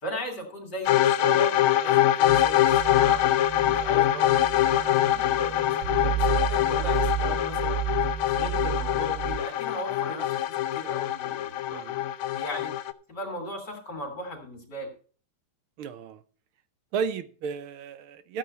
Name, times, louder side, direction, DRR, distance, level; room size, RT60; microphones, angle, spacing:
voice 1, 0.0-3.2 3.6-7.8 8.3-12.0 12.3-12.7 13.1-14.9, equal, 50° left, 3.2 m, -37 dB
sound 1, 0.9-12.9, left 12 dB, 80° left, 1.5 m, -24 dB
sound 2, 2.3-9.4, right 12 dB, 65° right, 1.3 m, -32 dB
voice 2, 15.8-16.2 16.9-18.4, right 6 dB, 80° right, 1.8 m, -33 dB
13.0 x 8.8 x 4.2 m
omnidirectional pair, 2.3 m